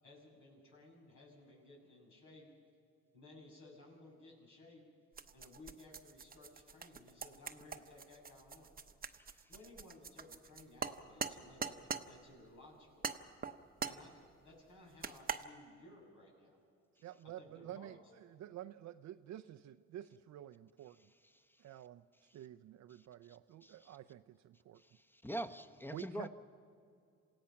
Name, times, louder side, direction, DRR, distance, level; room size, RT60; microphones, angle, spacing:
voice 1, 0.0-2.5 3.1-4.8 5.3-8.7 9.5-13.1 13.8-16.6 17.4-17.9, left 2 dB, 75° left, -1 dB, 7.0 m, -58 dB
sound 1, 5.1-12.1 13.0-14.0 15.0-15.4, right 5 dB, 30° right, 0.9 m, -43 dB
voice 2, 17.0-21.0 21.6-22.0 22.3-24.8 25.9-26.3, right 12 dB, 65° right, 9 dB, 0.5 m, -50 dB
voice 3, 23.6-24.0 24.8-26.3, equal, 5° left, 9 dB, 1.0 m, -44 dB
27.5 x 17.0 x 5.8 m, 2.4 s
cardioid pair, 90°, 30 cm